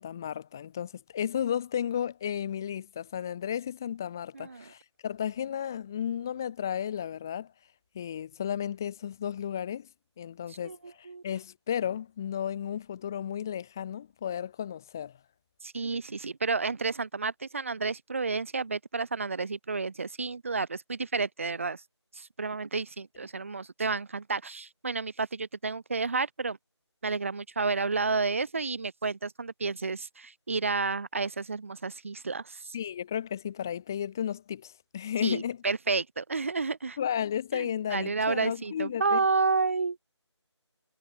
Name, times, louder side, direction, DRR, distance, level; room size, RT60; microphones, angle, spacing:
voice 1, 0.0-7.5 7.9-9.9 10.2-15.2 32.7-35.6 37.0-39.2, left 9 dB, 5° left, 1.2 m, -33 dB
voice 2, 4.3-4.7 10.6-11.2 15.6-21.8 22.1-26.6 27.0-32.8 35.2-37.0 37.5-40.0, right 4 dB, 25° right, 2.9 m, -31 dB
figure-of-eight pair, 175°, 15 cm